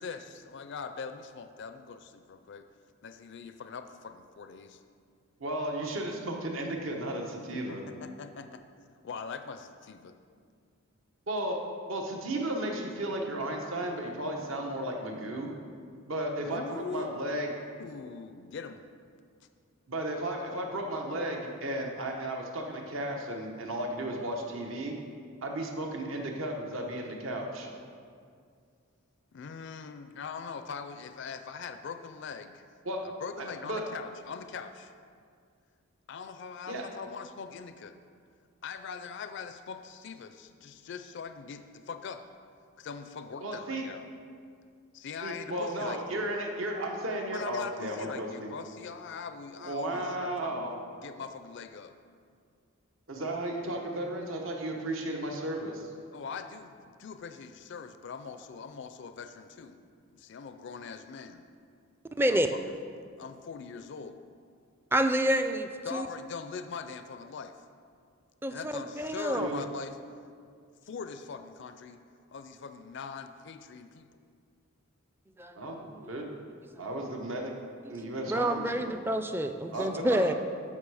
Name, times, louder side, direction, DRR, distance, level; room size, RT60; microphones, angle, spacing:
voice 1, 0.0-2.7 3.0-4.8 7.5-8.6 9.0-10.1 16.5-18.9 29.3-32.7 33.0-34.9 36.1-38.0 38.6-42.2 42.8-44.0 44.9-46.3 47.3-51.9 56.1-59.8 60.1-61.5 62.3-62.7 63.2-64.2 65.8-67.5 68.5-70.0 70.8-72.0 72.3-74.1 79.7-80.3, left 5 dB, 55° left, 8 dB, 0.4 m, -42 dB
voice 2, 5.4-7.8 11.3-11.6 11.9-15.5 16.1-17.5 19.9-24.9 25.4-27.7 32.8-33.0 33.4-33.8 36.7-36.8 43.4-43.8 45.2-48.5 49.6-50.7 53.1-55.9 69.4-69.5 75.5-76.3 76.8-77.5 77.9-79.0 79.7-80.3, right 1 dB, 65° right, 1 dB, 1.1 m, -34 dB
voice 3, 62.2-62.5 64.9-66.1 68.4-69.6 75.4-75.6 75.9-76.0 76.8-76.9 77.9-80.3, right 1 dB, 10° right, 7 dB, 0.4 m, -28 dB
13.0 x 5.6 x 4.8 m, 2.2 s
head